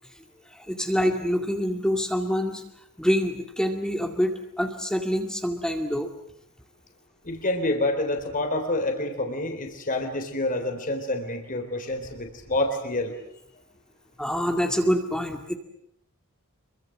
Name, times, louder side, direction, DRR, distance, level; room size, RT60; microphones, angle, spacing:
voice 1, 0.5-2.6 3.0-6.1 14.2-15.6, equal, 5° left, 4 dB, 2.2 m, -26 dB
voice 2, 7.2-13.2, left 2 dB, 40° left, 5 dB, 3.7 m, -28 dB
26.5 x 23.5 x 7.6 m, 0.73 s
head